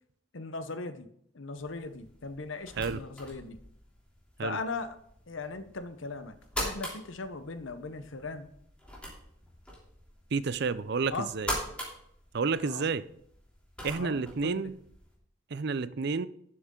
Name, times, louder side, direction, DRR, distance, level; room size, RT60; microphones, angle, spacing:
voice 1, 0.3-1.1 1.3-3.6 4.4-5.0 5.3-6.4 6.6-8.5 11.1-11.3 12.6-12.9 13.9-14.7, left 3 dB, 80° left, 0.9 m, -38 dB
sound 1, 1.6-15.2, equal, 5° left, 3.0 m, -43 dB
voice 2, 10.3-11.5 12.3-13.0 13.8-14.8 15.5-16.3, right 4 dB, 55° right, 0.5 m, -30 dB
12.0 x 7.7 x 3.8 m
head